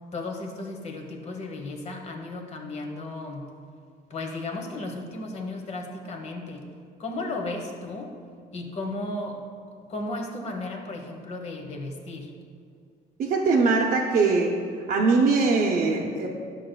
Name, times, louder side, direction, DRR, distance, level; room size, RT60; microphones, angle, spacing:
voice 1, 0.1-3.5 4.1-6.7 7.0-8.2 8.5-9.4 9.9-12.3, left 2 dB, 40° left, 2 dB, 1.1 m, -34 dB
voice 2, 13.2-14.6 14.9-16.3, right 4 dB, 55° right, -3 dB, 0.7 m, -21 dB
11.0 x 6.5 x 2.3 m, 2.3 s
cardioid pair, 110°, 17 cm